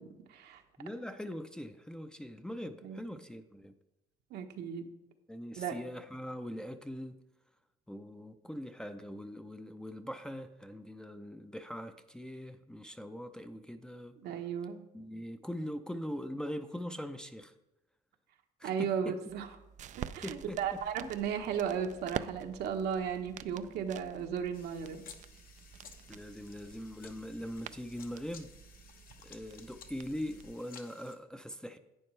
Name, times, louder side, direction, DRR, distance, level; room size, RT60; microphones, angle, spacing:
voice 1, 0.0-0.6 2.8-3.0 4.3-4.8 5.6-5.8 14.2-14.8 18.6-19.5 20.0-25.0, right 7 dB, 75° right, 4 dB, 1.2 m, -35 dB
voice 2, 0.8-3.7 5.3-7.2 7.9-14.2 14.9-17.5 18.6-19.2 20.2-20.8 26.1-28.5 29.2-31.8, equal, 5° left, 6 dB, 0.5 m, -42 dB
sound 1, 19.3-30.5, right 10 dB, 45° right, 0.4 m, -48 dB
sound 2, 24.5-31.2, left 7 dB, 60° left, 1.1 m, -56 dB
11.0 x 8.8 x 3.3 m, 0.95 s
cardioid pair, 110°, 17 cm